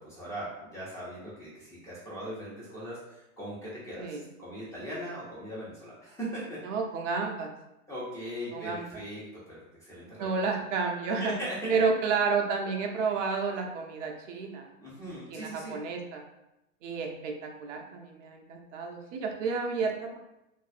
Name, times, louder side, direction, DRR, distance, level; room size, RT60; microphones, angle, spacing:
voice 1, 0.0-6.6 7.9-10.3 11.2-11.8 14.8-15.8, equal, 5° left, -9 dB, 1.1 m, -39 dB
voice 2, 6.6-7.5 8.5-9.0 10.2-11.3 11.7-14.7 15.3-16.2 16.8-20.2, right 5 dB, 60° right, 2 dB, 0.6 m, -31 dB
2.5 x 2.4 x 2.5 m, 0.90 s
hypercardioid pair, 120°, 42 cm